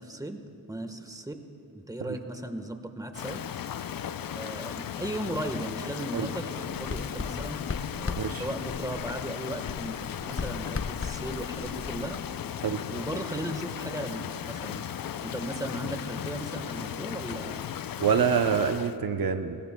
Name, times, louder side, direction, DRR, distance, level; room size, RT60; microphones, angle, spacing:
voice 1, 0.0-1.4 1.7-3.4 4.3-7.6 8.0-12.2 12.9-14.9 15.2-17.7, right 1 dB, 10° right, 7 dB, 1.2 m, -37 dB
Rain, 3.1-19.0, left 9 dB, 65° left, 0.5 m, -36 dB
Writing, 6.7-9.3 9.7-12.4, left 4 dB, 35° left, 0.8 m, -37 dB
voice 2, 18.0-19.6, right 7 dB, 65° right, 8 dB, 0.7 m, -26 dB
27.5 x 15.0 x 2.2 m, 2.7 s
cardioid pair, 50°, 38 cm